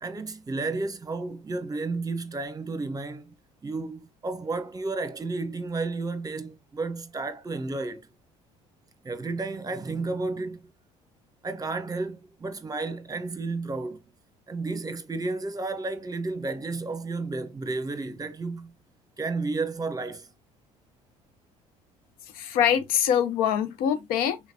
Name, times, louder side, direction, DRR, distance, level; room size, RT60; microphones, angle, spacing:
voice 1, 0.0-3.3 3.6-8.0 9.0-10.6 11.4-14.0 14.5-18.7 19.2-20.3, right 3 dB, 25° right, 1.0 m, -32 dB
voice 2, 22.3-24.4, left 9 dB, 70° left, 0.9 m, -24 dB
4.5 x 3.3 x 2.7 m
supercardioid pair, 70°, 15 cm